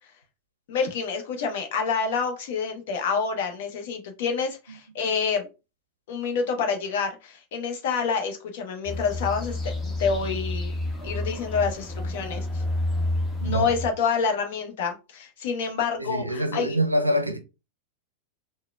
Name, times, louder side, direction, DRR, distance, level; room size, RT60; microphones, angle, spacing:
voice 1, 0.7-5.5 6.1-10.7 11.0-12.6 13.4-16.8, left 5 dB, 55° left, 0.8 m, -28 dB
sound 1, 8.8-13.9, left 1 dB, 15° left, 0.7 m, -29 dB
voice 2, 16.0-17.4, equal, 85° right, 0.5 m, -25 dB
3.7 x 2.1 x 2.2 m
figure-of-eight pair, 90°, 0 cm